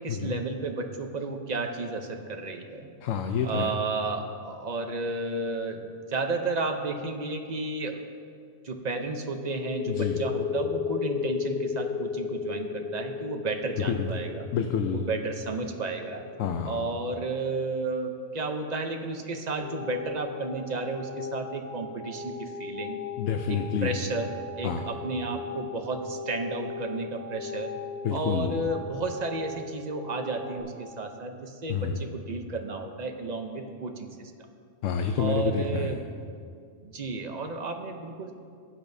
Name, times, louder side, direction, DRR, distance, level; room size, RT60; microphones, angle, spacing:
voice 1, 0.0-2.9 3.4-8.0 8.6-14.5 14.9-16.2 16.7-23.0 23.5-27.7 28.1-34.1 35.2-36.2 36.8-38.3, right 3 dB, 45° right, 5 dB, 0.7 m, -32 dB
voice 2, 3.0-3.7 9.9-10.2 13.9-14.1 14.5-15.0 16.4-16.8 23.2-23.9 24.6-24.8 28.0-28.6 31.7-32.0 34.8-36.0, left 7 dB, 80° left, 5 dB, 0.9 m, -28 dB
sound 1, 9.3-16.8, left 6 dB, 50° left, 0.7 m, -33 dB
sound 2, 19.6-30.6, left 3 dB, 70° right, 2.1 m, -39 dB
15.5 x 9.1 x 2.7 m, 2.2 s
omnidirectional pair, 1.3 m